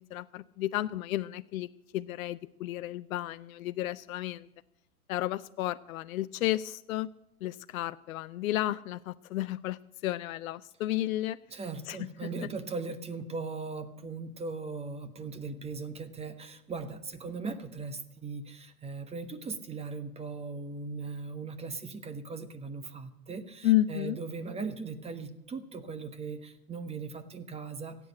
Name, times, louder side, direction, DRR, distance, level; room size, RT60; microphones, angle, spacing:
voice 1, 0.0-1.7 1.9-4.5 5.1-7.1 7.4-11.4 11.9-12.0 23.6-24.2, left 15 dB, 65° left, 13 dB, 0.6 m, -32 dB
voice 2, 11.5-28.0, right 4 dB, 15° right, 10 dB, 1.1 m, -39 dB
16.0 x 8.3 x 8.3 m, 0.86 s
hypercardioid pair, 110°, 44 cm